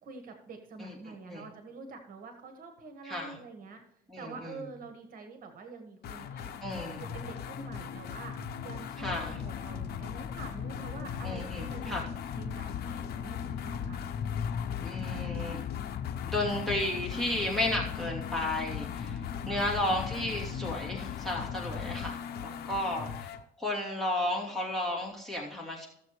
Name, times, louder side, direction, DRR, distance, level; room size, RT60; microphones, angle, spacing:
voice 1, 0.0-3.8 4.2-6.5 7.0-8.3 8.6-12.1 12.3-14.0 19.5-19.6 21.7-21.8, right 4 dB, 55° right, 5 dB, 1.4 m, -46 dB
voice 2, 0.8-1.4 3.0-3.4 4.1-4.6 6.6-7.1 9.0-9.4 11.2-12.1 14.8-15.6 16.3-23.3 23.6-25.9, left 1 dB, ahead, -4 dB, 2.7 m, -33 dB
sound 1, 6.0-23.4, left 7 dB, 65° left, 0.8 m, -40 dB
sound 2, 9.0-22.1, left 8 dB, 40° left, 0.5 m, -39 dB
14.5 x 7.2 x 3.1 m, 0.77 s
cardioid pair, 110°, 17 cm